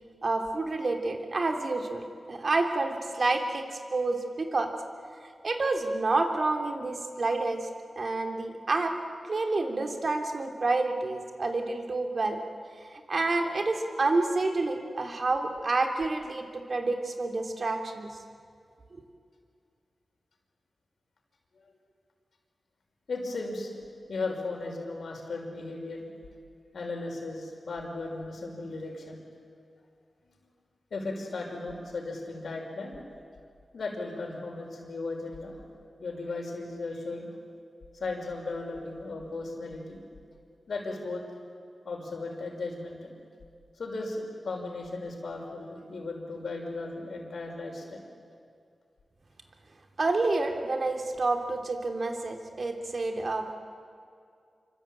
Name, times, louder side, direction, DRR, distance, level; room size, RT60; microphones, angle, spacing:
voice 1, 0.2-3.6 3.9-4.7 5.4-7.7 8.0-9.0 9.3-12.4 12.9-18.1 50.0-53.6, right 3 dB, 55° right, 4 dB, 3.1 m, -29 dB
voice 2, 23.1-26.1 26.7-29.2 30.3-30.4 30.9-33.0 33.7-35.6 36.0-37.3 37.9-40.0 40.7-41.2 41.8-43.1 43.8-48.0, left 3 dB, 80° left, 1 dB, 5.7 m, -36 dB
26.5 x 24.5 x 9.0 m, 2.4 s
cardioid pair, 60°, 0 cm